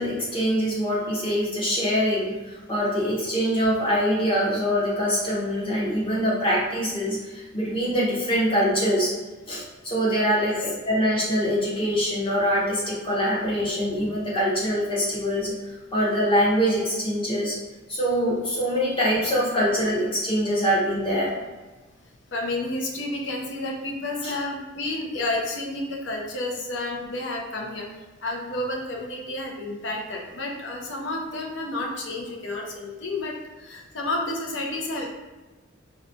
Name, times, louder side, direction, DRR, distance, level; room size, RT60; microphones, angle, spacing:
voice 1, 0.0-2.4 2.7-7.2 7.5-9.1 9.5-15.5 15.9-17.6 17.9-21.4 24.2-24.3, equal, 25° left, -6 dB, 0.9 m, -24 dB
voice 2, 22.3-27.9 28.2-35.0, left 2 dB, 65° left, 0 dB, 0.6 m, -30 dB
4.0 x 2.2 x 2.7 m, 1.2 s
head